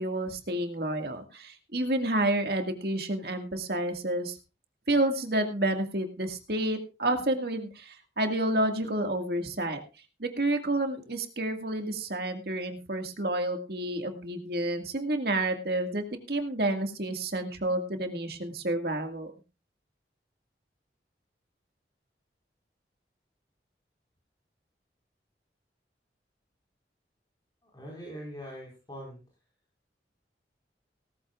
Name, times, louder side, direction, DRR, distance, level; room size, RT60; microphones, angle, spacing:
voice 1, 0.0-4.4 4.9-9.8 10.2-19.3, right 1 dB, 60° right, 5 dB, 2.0 m, -30 dB
voice 2, 27.6-29.2, equal, 25° left, -2 dB, 4.9 m, -42 dB
18.0 x 14.0 x 2.5 m, 0.31 s
head